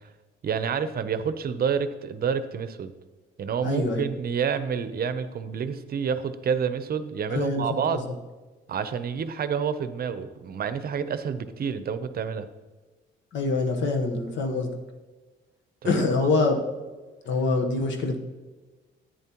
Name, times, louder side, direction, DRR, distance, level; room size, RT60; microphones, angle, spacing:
voice 1, 0.4-2.9 3.4-8.1 8.7-12.5 15.8-15.9, right 7 dB, 50° right, 12 dB, 0.7 m, -28 dB
voice 2, 3.6-4.0 7.3-8.0 13.3-14.7 15.8-16.6 17.2-18.2, left 3 dB, 70° left, 4 dB, 1.2 m, -25 dB
10.5 x 9.0 x 3.0 m, 1.3 s
cardioid pair, 90°, 20 cm